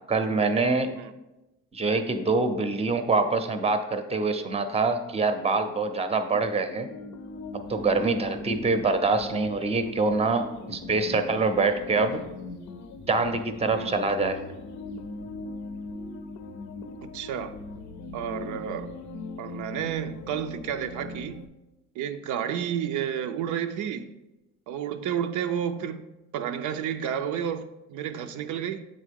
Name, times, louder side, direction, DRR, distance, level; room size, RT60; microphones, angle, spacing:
voice 1, 0.1-0.9 1.7-6.9 7.7-12.2 13.1-14.4, right 3 dB, 20° right, 0.6 m, -25 dB
sound 1, 6.7-21.5, left 3 dB, 70° left, 0.6 m, -40 dB
voice 2, 17.1-17.5 18.1-18.9 19.4-21.4 22.0-24.1 24.7-26.1 26.3-28.8, right 9 dB, 80° right, 0.4 m, -31 dB
7.9 x 3.7 x 3.5 m
cardioid pair, 90°, 30 cm